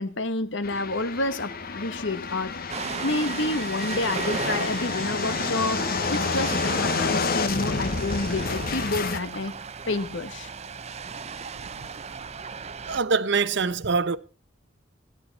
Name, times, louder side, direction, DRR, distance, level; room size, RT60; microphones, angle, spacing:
voice 1, 0.0-2.6 3.0-5.8 6.1-9.5 9.9-10.5, left 2 dB, 65° left, 1.4 m, -29 dB
sound 1, 0.6-9.2, left 4 dB, 50° left, 1.0 m, -29 dB
Ocean, 2.7-13.0, right 5 dB, 35° right, 0.7 m, -35 dB
voice 2, 12.9-14.2, right 4 dB, 65° right, 0.8 m, -24 dB
17.0 x 10.5 x 4.1 m
head